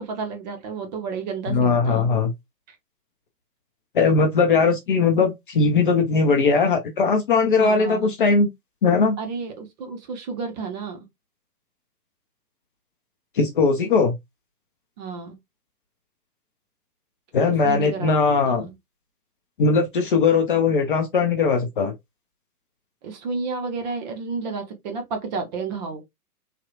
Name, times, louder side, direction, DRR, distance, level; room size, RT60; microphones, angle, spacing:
voice 1, 0.0-2.1 7.6-8.1 9.2-11.0 15.0-15.4 17.5-18.1 18.4-18.7 23.0-26.0, right 4 dB, 30° right, 0.9 m, -31 dB
voice 2, 1.5-2.3 3.9-8.5 8.8-9.2 13.4-14.2 17.3-18.7 19.6-21.9, left 4 dB, 35° left, 0.6 m, -19 dB
3.3 x 2.8 x 2.4 m
figure-of-eight pair, 120°, 47 cm